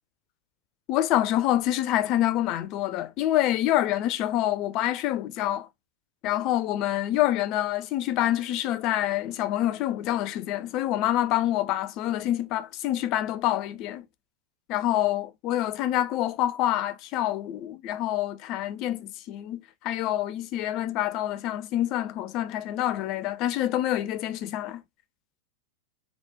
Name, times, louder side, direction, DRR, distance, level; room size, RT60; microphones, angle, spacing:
voice 1, 0.9-5.7 6.2-14.0 14.7-24.8, left 13 dB, 40° left, 0.4 m, -27 dB
3.1 x 2.0 x 3.1 m
figure-of-eight pair, 90°, 0 cm